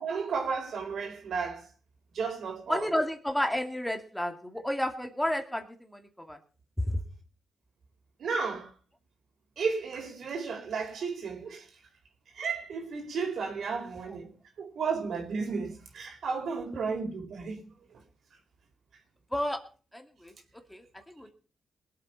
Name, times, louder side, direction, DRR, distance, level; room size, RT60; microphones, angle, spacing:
voice 1, 0.0-1.7 2.1-2.9 8.2-8.7 9.6-11.7 12.4-14.3 14.6-17.6, right 5 dB, 70° right, 4.3 m, -33 dB
voice 2, 2.7-6.4 6.8-7.0 19.3-19.6 19.9-20.3 20.7-20.8 21.2-21.3, left 1 dB, 5° left, 2.6 m, -31 dB
21.0 x 8.1 x 5.5 m
cardioid pair, 80°, 0 cm